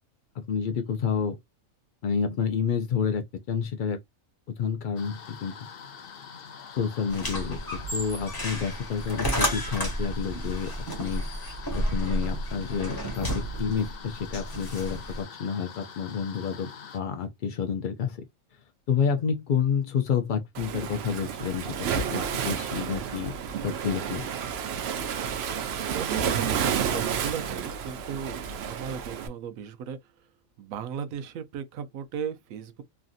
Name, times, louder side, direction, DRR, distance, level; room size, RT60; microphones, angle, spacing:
voice 1, 0.4-1.4 2.0-4.0 4.5-5.6 6.7-10.7 11.0-11.2 11.7-16.7 16.9-18.2 18.9-23.3 23.6-24.3, left 6 dB, 90° left, 0.4 m, -29 dB
sound 1, 5.0-17.0, left 7 dB, 60° left, 0.7 m, -45 dB
sound 2, 7.1-15.2, equal, 15° left, 1.0 m, -31 dB
Waves surf, 20.5-29.3, right 7 dB, 60° right, 0.7 m, -30 dB
voice 2, 25.5-30.3 30.6-32.8, right 8 dB, 85° right, 1.0 m, -36 dB
3.2 x 2.6 x 2.4 m
omnidirectional pair, 1.4 m